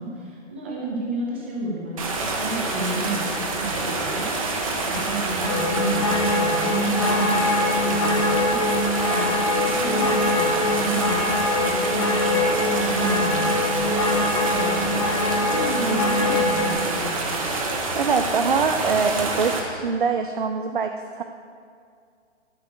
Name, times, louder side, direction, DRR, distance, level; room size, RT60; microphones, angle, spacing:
voice 1, 0.0-8.6 9.1-14.0 14.5-15.0 15.3-17.1, right 2 dB, 10° right, -3 dB, 0.8 m, -32 dB
sound 1, 2.0-19.6, right 3 dB, 30° right, 1.2 m, -27 dB
sound 2, 5.4-16.7, left 2 dB, 25° left, 0.7 m, -23 dB
voice 2, 17.9-20.9 21.2-21.3, right 5 dB, 45° right, 6 dB, 0.6 m, -23 dB
13.0 x 6.5 x 7.7 m, 2.3 s
hypercardioid pair, 175°, 36 cm